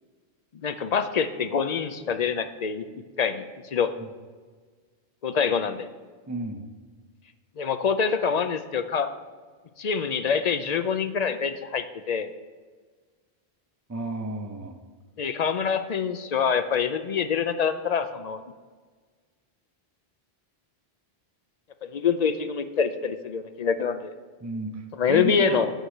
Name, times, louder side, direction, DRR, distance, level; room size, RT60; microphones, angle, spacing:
voice 1, 0.6-3.4 3.7-3.9 5.2-5.9 7.6-9.1 9.8-12.3 15.2-18.4 21.8-24.1 24.9-25.7, left 6 dB, 50° left, 9 dB, 0.5 m, -25 dB
voice 2, 6.3-6.7 13.9-14.8 24.4-25.7, right 2 dB, 20° right, 5 dB, 0.6 m, -32 dB
8.9 x 4.8 x 6.5 m, 1.5 s
omnidirectional pair, 1.1 m